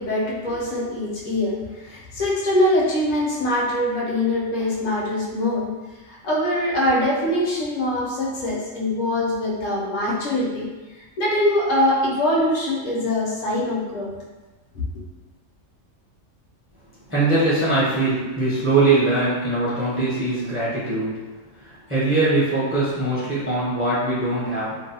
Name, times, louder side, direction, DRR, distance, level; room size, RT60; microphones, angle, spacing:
voice 1, 0.0-5.7 6.1-10.7 11.0-14.1, left 1 dB, 80° left, -4 dB, 1.0 m, -23 dB
voice 2, 17.1-21.3 21.6-24.8, right 2 dB, 20° right, -9 dB, 0.4 m, -22 dB
2.6 x 2.0 x 2.7 m, 1.2 s
omnidirectional pair, 1.3 m